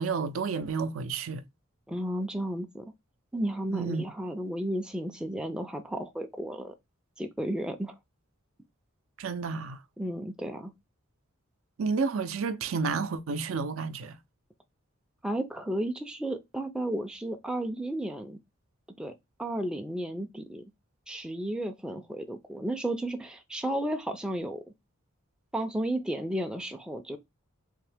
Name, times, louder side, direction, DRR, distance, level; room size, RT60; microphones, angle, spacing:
voice 1, 0.0-1.4 3.7-4.0 9.2-9.8 11.8-14.2, right 5 dB, 70° right, 0.5 m, -31 dB
voice 2, 1.9-2.9 3.3-6.7 7.2-7.9 10.0-10.7 15.2-18.4 19.0-19.1 19.4-20.6 21.1-24.6 25.5-27.2, right 1 dB, 5° right, 0.3 m, -33 dB
3.6 x 2.9 x 3.3 m
head